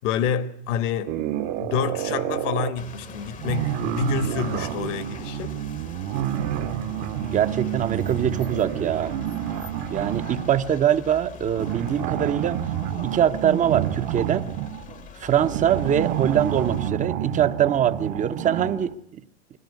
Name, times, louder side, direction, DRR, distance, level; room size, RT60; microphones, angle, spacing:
voice 1, 0.0-1.1 1.4-5.5, left 7 dB, 65° left, 1.5 m, -28 dB
sound 1, 1.1-2.8 3.4-10.6 11.5-18.9, right 11 dB, 45° right, 1.1 m, -29 dB
sound 2, 2.8-16.9, left 4 dB, 20° left, 0.9 m, -42 dB
voice 2, 7.3-9.2 9.9-12.6 13.0-14.5 15.2-19.2, right 9 dB, 20° right, 0.7 m, -23 dB
20.0 x 14.0 x 9.4 m
supercardioid pair, 125°, 40 cm